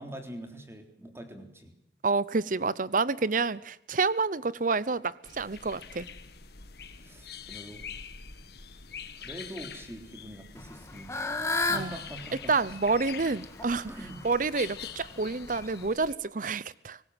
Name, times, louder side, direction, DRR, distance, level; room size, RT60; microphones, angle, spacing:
voice 1, 0.0-1.7 7.0-7.9 9.2-11.2 11.6-13.0 13.9-14.2, right 1 dB, 15° right, 3.6 m, -44 dB
voice 2, 2.0-6.1 11.7-12.0 12.5-13.9 14.2-17.0, right 4 dB, 50° right, 0.8 m, -28 dB
sound 1, 5.2-16.1, left 7 dB, 60° left, 1.7 m, -45 dB
Fowl / Bird, 10.6-15.9, left 3 dB, 15° left, 1.8 m, -35 dB
24.0 x 19.5 x 7.9 m
head